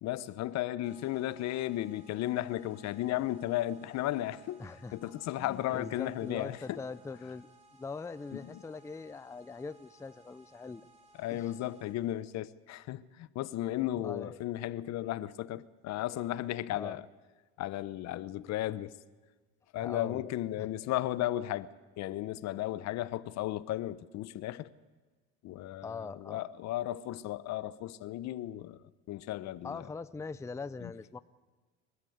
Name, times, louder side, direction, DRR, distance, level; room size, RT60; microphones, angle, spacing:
voice 1, 0.0-4.6 4.9-6.8 8.3-8.6 11.2-17.0 17.6-18.9 19.7-21.7 22.0-24.7 25.4-28.8 29.1-29.8 30.8-30.9, left 14 dB, 55° left, 0.9 m, -35 dB
sound 1, 0.8-12.2, right 1 dB, 20° right, 3.5 m, -61 dB
voice 2, 4.6-5.1 5.4-10.9 11.3-11.5 13.9-14.4 16.7-17.0 19.8-20.7 25.8-26.5 29.6-31.2, left 4 dB, 10° left, 0.5 m, -42 dB
28.5 x 13.0 x 8.0 m
supercardioid pair, 100°, 32 cm